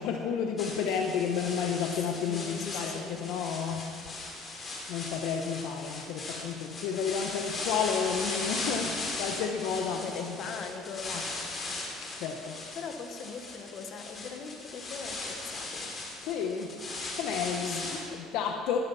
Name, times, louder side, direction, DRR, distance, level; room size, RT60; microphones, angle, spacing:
voice 1, 0.0-4.2 4.9-10.4 11.0-11.2 12.0-12.7 16.2-16.8 17.1-17.9 18.3-18.8, left 6 dB, 75° left, 4 dB, 0.8 m, -31 dB
sound 1, 0.6-18.1, left 2 dB, 30° left, 2.8 m, -38 dB
voice 2, 2.2-3.2 9.9-11.2 12.7-15.9 17.6-18.2, left 5 dB, 50° left, 6 dB, 1.2 m, -41 dB
13.5 x 12.5 x 4.1 m, 2.5 s
cardioid pair, 110°, 0 cm